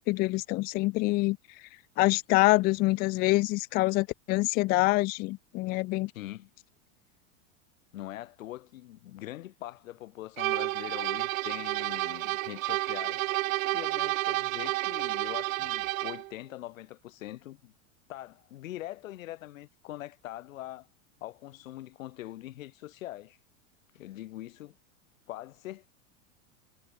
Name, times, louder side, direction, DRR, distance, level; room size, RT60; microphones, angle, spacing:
voice 1, 0.0-1.4 2.0-6.1, left 21 dB, 25° left, 0.6 m, -26 dB
voice 2, 6.1-6.5 7.9-13.2 13.7-17.7 18.1-20.9 21.2-23.4 23.9-24.7 25.3-25.9, left 15 dB, 75° left, 4.7 m, -42 dB
sound 1, 10.4-16.3, right 19 dB, 80° right, 0.7 m, -30 dB
supercardioid pair, 170°, 40 cm